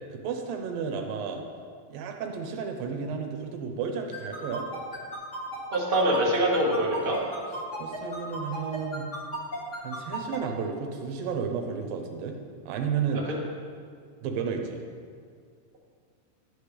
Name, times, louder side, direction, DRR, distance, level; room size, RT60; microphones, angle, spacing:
voice 1, 0.1-1.4 1.9-4.7 7.8-9.1 9.8-12.4 12.7-13.3 14.2-14.8, right 6 dB, 80° right, 3 dB, 2.6 m, -32 dB
sound 1, 4.1-10.4, right 1 dB, 30° left, 1.6 m, -34 dB
voice 2, 5.7-7.2, right 1 dB, 60° right, -4 dB, 0.5 m, -24 dB
11.5 x 8.7 x 3.3 m, 2.1 s
omnidirectional pair, 4.1 m